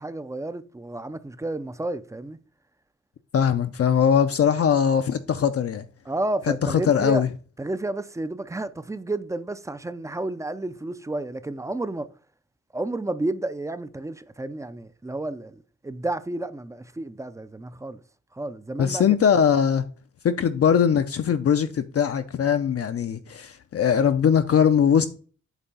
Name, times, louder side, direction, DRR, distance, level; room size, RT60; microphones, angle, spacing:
voice 1, 0.0-2.4 6.1-7.2 7.6-12.1 12.7-18.0 18.3-19.0, right 2 dB, 10° right, 0.4 m, -31 dB
voice 2, 3.3-5.8 6.5-7.3 18.8-19.8 20.2-25.1, left 8 dB, 50° left, 0.5 m, -21 dB
8.1 x 3.3 x 5.4 m
wide cardioid pair, 150°, 30 cm